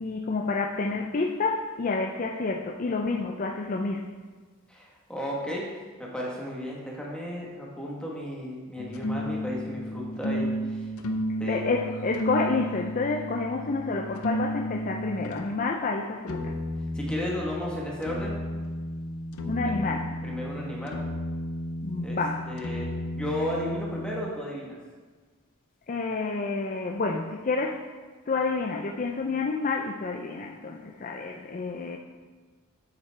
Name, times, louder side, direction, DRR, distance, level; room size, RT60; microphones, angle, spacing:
voice 1, 0.0-4.1 11.5-16.5 19.4-20.1 21.8-22.4 25.9-27.8 28.3-32.0, left 3 dB, 40° left, 1 dB, 0.4 m, -29 dB
voice 2, 4.7-10.9 11.4-11.6 16.9-18.4 19.6-19.7 20.2-21.0 22.0-22.2 22.5-24.8, left 1 dB, 5° left, -4 dB, 1.2 m, -34 dB
sound 1, 8.8-15.4 16.3-24.3, equal, 80° left, 0.8 m, -33 dB
8.5 x 7.8 x 3.4 m, 1.4 s
head